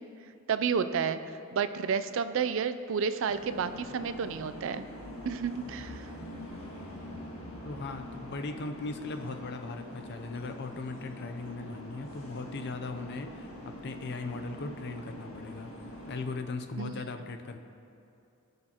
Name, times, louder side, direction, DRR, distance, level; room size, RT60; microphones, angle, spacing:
voice 1, 0.5-1.2 1.5-4.9 5.3-6.1 16.8-16.9, right 6 dB, 65° right, 12 dB, 0.4 m, -30 dB
sound 1, 3.3-16.2, equal, 75° left, 1.8 m, -44 dB
voice 2, 7.6-15.7 16.1-17.6, left 3 dB, 55° left, 6 dB, 0.5 m, -38 dB
16.0 x 6.7 x 2.9 m, 2.6 s
head